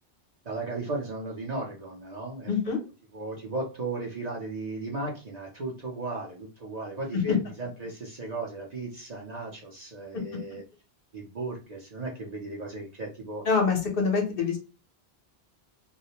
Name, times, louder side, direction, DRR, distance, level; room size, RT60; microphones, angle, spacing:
voice 1, 0.4-2.5 3.1-10.6 11.1-13.4, right 2 dB, 45° right, -1 dB, 0.6 m, -35 dB
voice 2, 2.5-2.8 7.1-7.2 13.4-14.6, left 5 dB, 60° left, 2 dB, 0.9 m, -25 dB
2.4 x 2.0 x 2.8 m, 0.31 s
omnidirectional pair, 1.1 m